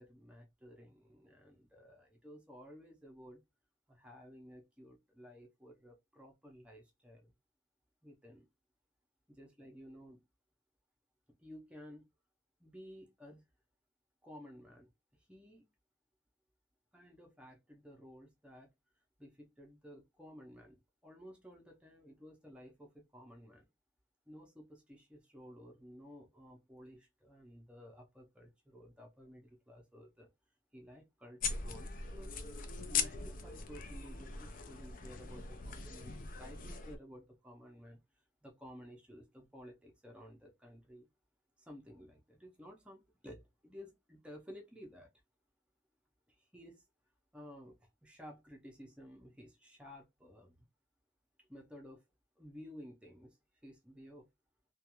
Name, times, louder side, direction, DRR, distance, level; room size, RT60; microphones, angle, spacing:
voice 1, 0.0-3.4 3.9-7.3 8.0-8.5 9.3-10.2 11.4-12.1 12.6-13.4 14.2-14.9 15.3-15.6 16.9-18.7 19.2-23.7 24.3-30.3 30.7-32.4 32.9-38.0 38.4-41.1 41.6-45.1 46.3-46.8 47.3-50.7 51.4-52.0 52.4-53.4 53.6-54.3, equal, 5° right, 0.6 m, -54 dB
sound 1, 31.4-37.0, left 5 dB, 45° left, 0.4 m, -40 dB
2.4 x 2.3 x 2.9 m
head